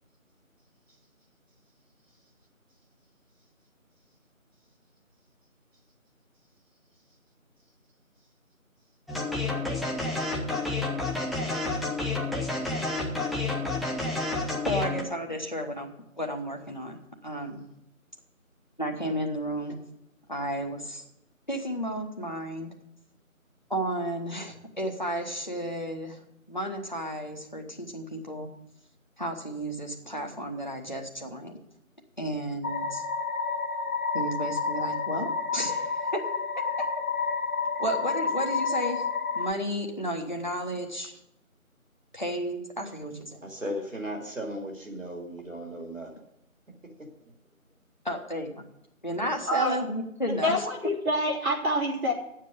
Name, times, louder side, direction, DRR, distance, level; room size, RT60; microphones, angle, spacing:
sound 1, 9.1-15.0, left 2 dB, ahead, 0.7 m, -30 dB
voice 1, 14.6-15.9 16.1-17.7 18.8-19.8 20.3-21.0 21.5-22.7 23.7-26.2 26.5-28.5 29.2-31.6 32.2-33.0 34.1-36.2 36.6-36.9 37.8-39.1 39.3-41.2 42.1-43.4 48.0-48.6 49.0-50.7, equal, 35° left, 2 dB, 1.0 m, -32 dB
sound 2, 32.6-39.5, left 5 dB, 85° left, 1.0 m, -30 dB
voice 2, 43.4-46.1 47.0-47.3, equal, 65° right, 1 dB, 2.7 m, -36 dB
voice 3, 50.3-52.1, equal, 80° right, -3 dB, 3.5 m, -27 dB
8.7 x 7.5 x 8.3 m, 0.82 s
figure-of-eight pair, 175°, 42 cm